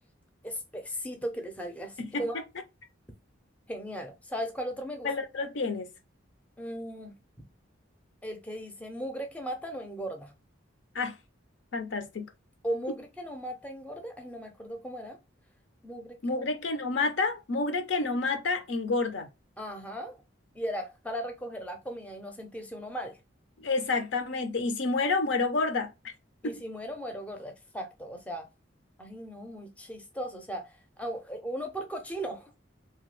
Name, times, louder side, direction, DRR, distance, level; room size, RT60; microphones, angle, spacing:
voice 1, 0.4-2.4 3.7-5.1 6.6-7.1 8.2-10.3 12.6-15.2 15.8-16.4 19.6-20.2 20.5-23.2 26.4-28.5 29.0-32.5, equal, 5° left, 0.5 m, -37 dB
voice 2, 5.0-5.9 10.9-11.2 11.7-12.3 16.2-19.3 23.6-26.1 26.4-26.6, left 3 dB, 70° left, 0.6 m, -29 dB
2.9 x 2.2 x 3.1 m
head